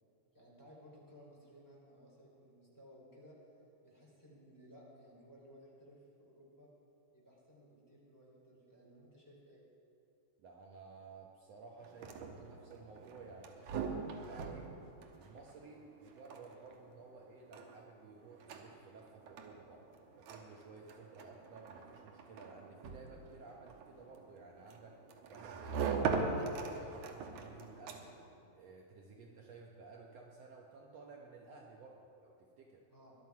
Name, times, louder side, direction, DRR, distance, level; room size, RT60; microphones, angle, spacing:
voice 1, 0.3-3.4 3.8-6.7 7.1-9.6 29.1-29.3 32.9-33.1, equal, 5° left, -5 dB, 3.1 m, -59 dB
voice 2, 10.4-14.8 15.1-19.9 20.2-25.0 25.3-28.2 28.5-32.8, right 4 dB, 65° right, 0 dB, 2.0 m, -55 dB
sound 1, 11.8-28.3, right 5 dB, 85° right, 2.5 m, -42 dB
19.5 x 11.5 x 4.7 m, 2.7 s
omnidirectional pair, 3.3 m